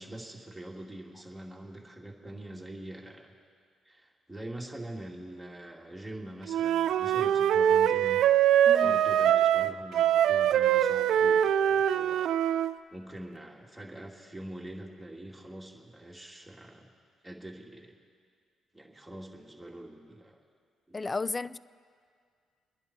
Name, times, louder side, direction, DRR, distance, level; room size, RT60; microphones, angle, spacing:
voice 1, 0.0-3.3 3.8-8.2 8.8-12.3 12.9-16.9 17.2-17.9 18.7-20.4 20.9-21.0, right 1 dB, 5° right, -2 dB, 2.6 m, -44 dB
Wind instrument woodwind instrument, 6.5-12.7, right 10 dB, 80° right, 0.4 m, -23 dB
voice 2, 8.7-9.0 20.9-21.6, left 3 dB, 25° left, 18 dB, 0.4 m, -33 dB
29.5 x 10.5 x 4.4 m, 2.1 s
cardioid pair, 90°, 0 cm